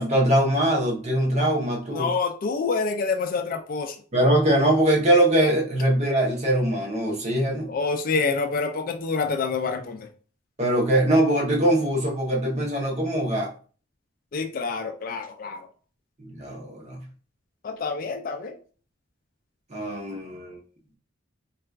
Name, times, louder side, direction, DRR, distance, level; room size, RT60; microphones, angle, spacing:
voice 1, 0.0-2.1 4.1-7.7 10.6-13.5 16.2-17.0 19.7-20.6, right 1 dB, 35° right, -1 dB, 0.8 m, -22 dB
voice 2, 1.9-4.0 7.7-10.1 14.3-15.7 17.6-18.5, left 4 dB, 45° left, 6 dB, 0.4 m, -27 dB
3.9 x 2.4 x 2.2 m, 0.40 s
head